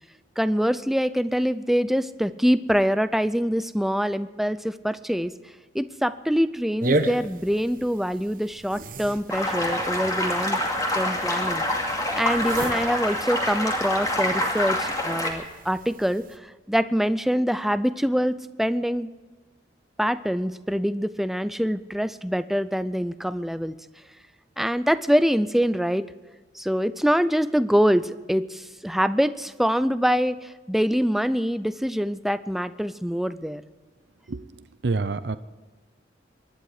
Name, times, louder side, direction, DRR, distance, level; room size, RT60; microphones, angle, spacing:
voice 1, 0.4-5.3 5.7-10.6 10.9-11.9 12.2-19.1 20.0-23.8 24.6-26.1 26.5-33.6, equal, ahead, 13 dB, 0.5 m, -24 dB
sound 1, 6.8-16.4, right 2 dB, 50° right, 1.1 m, -35 dB
sound 2, 9.3-15.3, left 1 dB, 20° left, 2.4 m, -26 dB
voice 2, 34.3-35.4, right 3 dB, 65° right, 13 dB, 0.6 m, -28 dB
24.0 x 11.0 x 4.9 m, 1.3 s
head